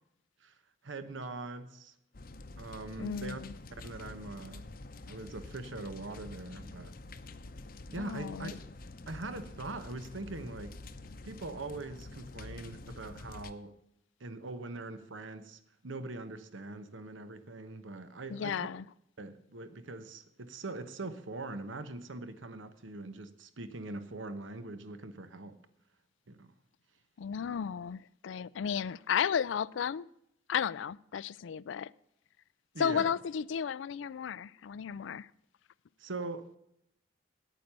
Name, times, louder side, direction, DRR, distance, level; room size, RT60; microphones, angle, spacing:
voice 1, 0.8-1.9 2.6-3.4 3.8-4.7 5.1-6.9 7.9-8.5 9.1-10.8 11.2-13.8 14.2-18.7 19.2-25.6 26.3-26.5 32.7-33.1 36.0-36.6, right 2 dB, 85° right, 1.0 m, -42 dB
sound 1, 2.1-13.5, left 2 dB, 50° left, 0.7 m, -47 dB
voice 2, 3.0-3.5 8.0-8.5 18.3-18.8 27.2-30.1 30.5-31.9 32.8-35.3, left 7 dB, 80° left, 0.4 m, -33 dB
9.3 x 9.2 x 6.8 m
head